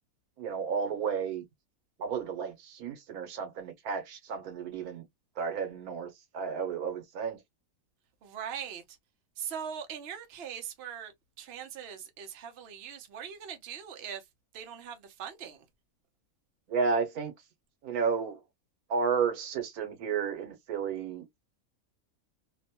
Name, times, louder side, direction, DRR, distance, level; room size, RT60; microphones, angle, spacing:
voice 1, 0.4-1.4 2.0-5.0 5.4-7.4 16.7-17.3 17.8-18.4 18.9-21.3, right 5 dB, 80° right, 1.3 m, -32 dB
voice 2, 8.2-9.0 9.4-11.1 11.4-14.2 14.5-15.6, right 8 dB, 55° right, 0.8 m, -41 dB
2.9 x 2.1 x 2.8 m
omnidirectional pair, 1.5 m